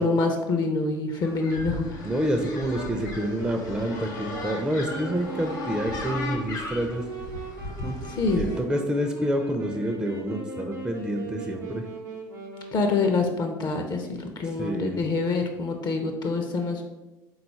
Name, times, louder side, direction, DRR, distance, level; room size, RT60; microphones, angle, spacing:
voice 1, 0.0-1.8 8.2-8.4 12.7-16.8, left 3 dB, 45° left, 4 dB, 0.5 m, -26 dB
sound 1, 1.2-8.6, left 2 dB, 75° left, 0.8 m, -36 dB
voice 2, 2.0-7.0 7.8-7.9 8.4-11.8 14.4-15.0, equal, 10° right, 3 dB, 0.4 m, -28 dB
Wind instrument woodwind instrument, 2.6-13.5, right 3 dB, 85° right, 0.7 m, -40 dB
3.8 x 2.3 x 4.2 m, 1.1 s
figure-of-eight pair, 55°, 10 cm